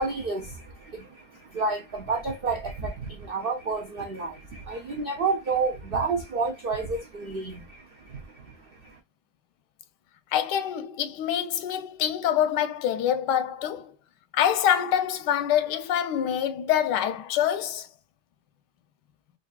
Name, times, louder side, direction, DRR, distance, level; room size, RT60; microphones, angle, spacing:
voice 1, 0.0-9.0, right 4 dB, 85° right, 0.5 m, -30 dB
voice 2, 10.3-13.9 14.3-17.9, left 10 dB, 90° left, 1.2 m, -25 dB
4.8 x 2.6 x 2.2 m
omnidirectional pair, 1.8 m